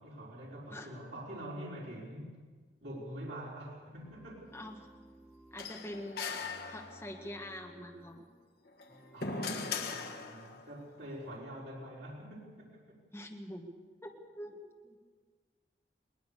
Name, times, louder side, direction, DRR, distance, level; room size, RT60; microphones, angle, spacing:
voice 1, 0.0-2.4 2.8-4.5 9.1-13.0, right 1 dB, 85° right, -5 dB, 5.0 m, -45 dB
sound 1, 3.9-5.8 6.4-8.2 8.9-9.7, right 1 dB, 5° right, 2.5 m, -58 dB
voice 2, 4.5-4.9 5.5-8.3 13.1-13.7 14.0-15.0, left 1 dB, 15° left, 1 dB, 2.0 m, -45 dB
sound 2, 5.6-7.3 8.7-10.7, left 4 dB, 60° left, 1.5 m, -39 dB
22.0 x 19.5 x 6.8 m, 1.5 s
head